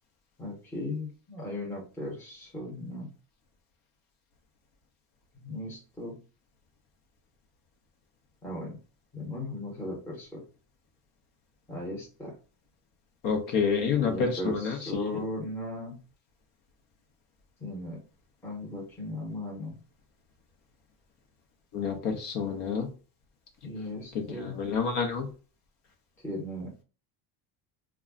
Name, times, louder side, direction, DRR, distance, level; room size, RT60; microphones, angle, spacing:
voice 1, 0.4-3.1 5.4-6.2 8.4-8.8 9.1-10.4 11.7-12.3 14.0-16.0 17.6-18.0 18.4-19.8 23.6-24.6 26.2-26.7, left 1 dB, 5° left, -3 dB, 0.7 m, -37 dB
voice 2, 13.2-15.0 21.7-22.9 24.1-25.3, left 6 dB, 65° left, 4 dB, 0.8 m, -28 dB
2.3 x 2.0 x 3.6 m, 0.36 s
cardioid pair, 160°, 48 cm